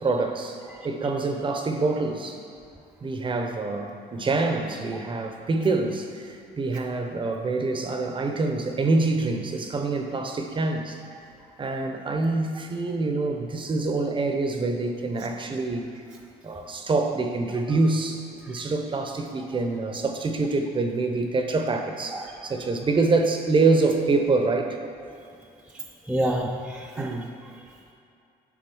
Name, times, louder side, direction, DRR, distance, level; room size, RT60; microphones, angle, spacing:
voice 1, 0.0-0.6 0.8-2.4 3.0-11.0 11.6-15.9 16.4-24.8 27.0-27.3, right 3 dB, 30° right, 5 dB, 0.8 m, -26 dB
voice 2, 26.1-27.2, right 1 dB, 5° right, -1 dB, 0.5 m, -29 dB
9.8 x 3.8 x 6.2 m, 2.6 s
cardioid pair, 110°, 17 cm